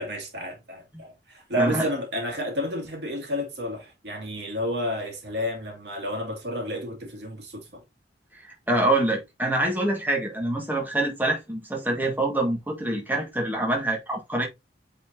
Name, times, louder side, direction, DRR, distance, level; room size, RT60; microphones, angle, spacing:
voice 1, 0.0-7.8, equal, 75° right, 2.4 m, -31 dB
voice 2, 1.6-1.9 8.3-14.5, right 1 dB, 10° right, 1.7 m, -25 dB
8.3 x 4.2 x 2.7 m
head